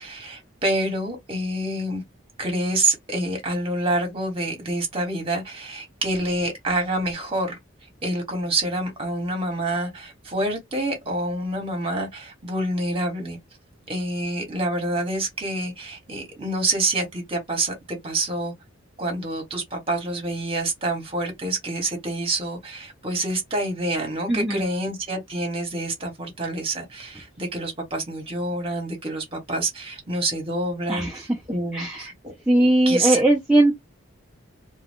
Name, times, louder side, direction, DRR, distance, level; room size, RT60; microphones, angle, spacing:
voice 1, 0.0-2.0 2.4-7.6 8.0-13.4 13.9-18.5 19.0-32.1 32.5-33.2, right 1 dB, 25° right, 1.3 m, -27 dB
voice 2, 24.3-24.6 30.9-31.3 31.7-32.1 32.5-33.7, right 1 dB, 5° right, 0.5 m, -19 dB
2.4 x 2.3 x 3.5 m
head